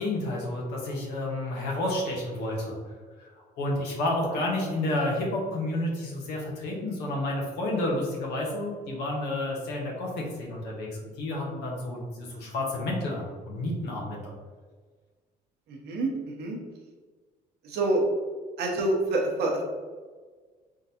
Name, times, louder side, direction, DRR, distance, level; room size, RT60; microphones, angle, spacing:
voice 1, 0.0-2.8 3.2-3.3 3.6-14.2, left 1 dB, 80° left, -2 dB, 1.1 m, -30 dB
voice 2, 15.7-16.6 17.6-18.0 18.6-19.6, right 2 dB, 75° right, 0 dB, 0.9 m, -27 dB
3.8 x 3.6 x 2.8 m, 1.4 s
cardioid pair, 110°, 17 cm